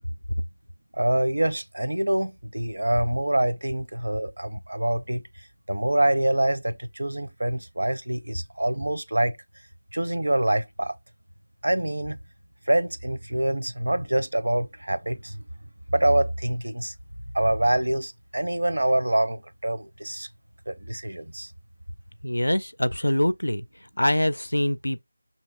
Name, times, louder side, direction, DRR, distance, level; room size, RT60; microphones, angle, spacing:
voice 1, 0.9-9.4 9.9-11.0 11.6-12.2 12.7-15.4 15.9-16.9 17.3-20.3 20.7-21.5, right 1 dB, 75° right, 0.5 m, -25 dB
voice 2, 22.2-25.0, left 1 dB, 85° left, 0.4 m, -24 dB
6.2 x 2.9 x 2.3 m
figure-of-eight pair, 165°, 0 cm